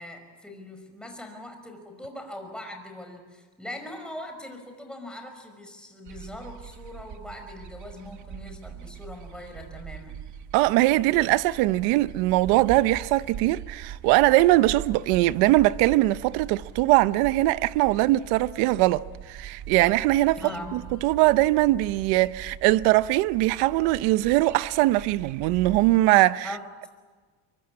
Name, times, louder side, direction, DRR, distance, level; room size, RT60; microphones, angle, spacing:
voice 1, 0.0-10.2 20.4-20.9 26.4-26.9, left 1 dB, ahead, 5.3 m, -41 dB
sound 1, 6.1-26.0, right 9 dB, 50° right, 1.4 m, -42 dB
voice 2, 10.5-19.0 19.3-20.4 20.7-26.5, right 18 dB, 90° right, 0.8 m, -21 dB
25.0 x 23.5 x 8.6 m
cardioid pair, 135°, 37 cm